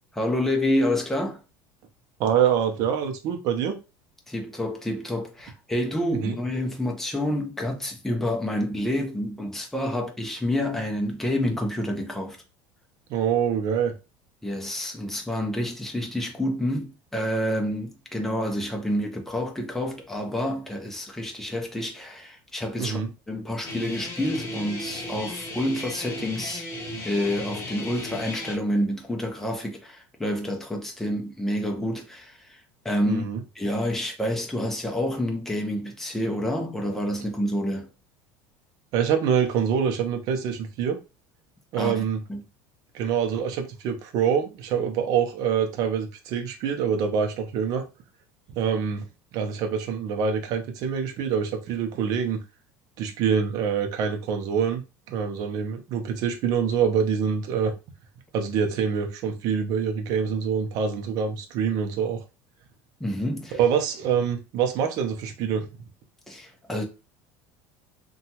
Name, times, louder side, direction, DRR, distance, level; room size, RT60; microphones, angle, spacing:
voice 1, 0.1-1.4 4.3-12.4 14.4-23.0 23.3-26.7 27.0-33.3 33.5-37.9 41.8-42.0 42.3-42.4 63.0-63.6 66.3-66.8, left 1 dB, 5° left, 0.5 m, -28 dB
voice 2, 2.2-3.8 6.1-6.4 13.1-13.9 22.8-23.1 33.1-33.4 38.9-41.0 41.7-42.2 42.9-47.8 48.5-49.0 49.3-52.4 53.0-54.8 55.1-57.7 58.3-62.2 63.5-65.7, right 7 dB, 50° right, 0.6 m, -25 dB
Guitar, 23.6-28.5, left 1 dB, 30° left, 0.9 m, -35 dB
2.8 x 2.3 x 2.8 m
cardioid pair, 155°, 8 cm